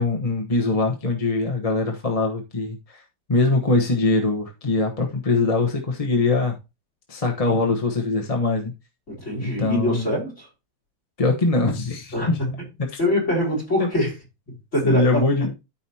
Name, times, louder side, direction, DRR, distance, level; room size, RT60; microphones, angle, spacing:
voice 1, 0.0-3.0 3.3-6.6 7.1-8.7 9.6-10.1 11.2-12.4 13.8-13.9 14.8-15.5, left 3 dB, 25° left, 1.1 m, -22 dB
voice 2, 9.1-10.5 12.1-12.6 13.0-14.1 14.7-15.2, left 1 dB, 40° left, 5.4 m, -24 dB
13.0 x 5.2 x 2.9 m
omnidirectional pair, 1.9 m